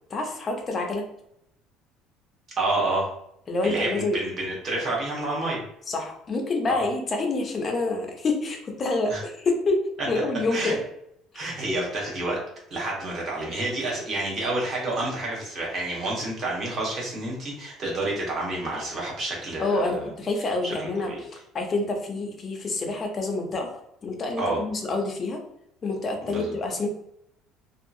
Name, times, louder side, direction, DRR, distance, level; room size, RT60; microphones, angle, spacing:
voice 1, 0.1-1.0 3.5-4.2 5.9-9.8 10.1-10.8 11.3-11.4 19.6-23.7 24.0-25.4 25.8-26.9, left 2 dB, 25° left, 2 dB, 0.5 m, -27 dB
voice 2, 2.6-3.1 3.6-5.6 6.7-6.8 9.1-9.2 10.5-10.8 11.3-12.4 12.7-20.1 20.6-21.2 24.4-24.6 26.3-26.6, right 2 dB, 35° right, -3 dB, 1.0 m, -29 dB
2.7 x 2.3 x 2.5 m, 0.76 s
cardioid pair, 155°, 0 cm